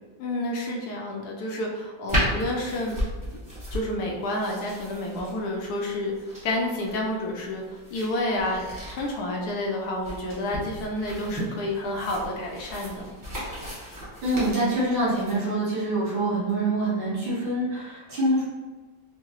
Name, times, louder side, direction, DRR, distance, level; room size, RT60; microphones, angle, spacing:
voice 1, 0.2-3.0 3.7-6.1 6.4-7.6 7.9-13.1, left 1 dB, 70° left, 0 dB, 1.0 m, -29 dB
sound 1, 2.1-15.3, equal, 15° right, 0.9 m, -34 dB
voice 2, 14.2-18.4, right 1 dB, 80° right, -8 dB, 2.2 m, -25 dB
4.5 x 2.1 x 3.0 m, 1.4 s
omnidirectional pair, 2.0 m